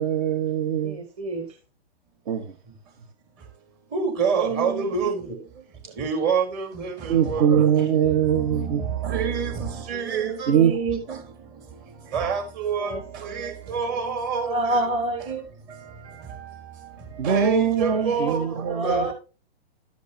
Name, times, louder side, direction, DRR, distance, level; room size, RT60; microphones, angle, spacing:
voice 1, 0.0-1.0 2.3-2.5 5.8-5.9 7.1-8.8 10.5-10.7 17.2-19.1, right 8 dB, 50° right, 1.4 m, -22 dB
voice 2, 0.8-1.6 4.3-4.9 9.9-11.2 12.8-13.5 14.4-15.5 17.9-19.1, right 2 dB, 20° right, 1.3 m, -29 dB
voice 3, 3.9-5.4 5.9-7.7 8.2-10.6 11.1-14.8 15.7-19.1, right 6 dB, 35° right, 3.8 m, -28 dB
11.5 x 8.2 x 2.9 m
hypercardioid pair, 135°, 30 cm